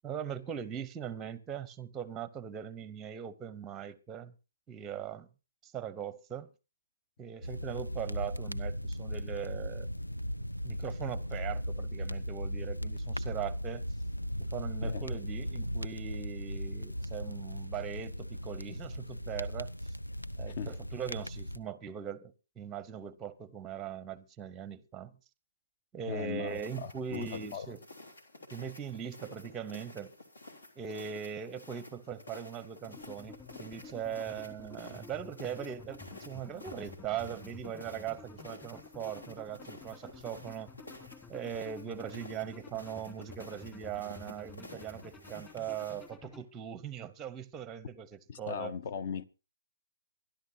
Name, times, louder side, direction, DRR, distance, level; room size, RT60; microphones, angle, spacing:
voice 1, 0.0-4.3 4.7-5.3 5.6-6.5 7.2-9.9 10.6-13.9 14.4-19.7 20.4-25.1 25.9-27.8 28.5-30.1 30.8-40.7 41.3-48.7, right 8 dB, 15° right, 0.8 m, -40 dB
sound 1, 7.4-21.6, equal, 90° left, 0.7 m, -37 dB
voice 2, 26.1-27.7 48.3-49.2, left 7 dB, 40° left, 0.9 m, -38 dB
sound 2, 26.5-46.1, left 2 dB, 70° left, 3.4 m, -52 dB
sound 3, 32.9-46.4, left 4 dB, 15° left, 2.4 m, -51 dB
24.0 x 11.5 x 2.7 m
figure-of-eight pair, 135°, 0 cm